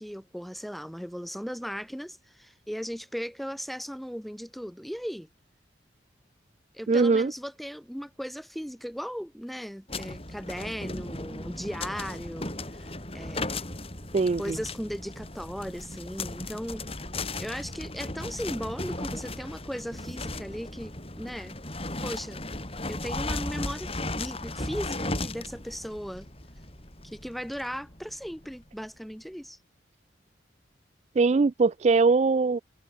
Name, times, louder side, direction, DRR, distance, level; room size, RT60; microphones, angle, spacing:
voice 1, 0.0-5.3 6.7-13.7 14.4-16.8 17.4-21.6 22.0-22.4 22.9-26.3 27.0-29.6, equal, ahead, 3.9 m, -37 dB
voice 2, 6.9-7.3 14.1-14.4 31.2-32.6, right 4 dB, 35° right, 0.3 m, -21 dB
sound 1, 9.9-28.6, left 2 dB, 30° left, 6.3 m, -36 dB
head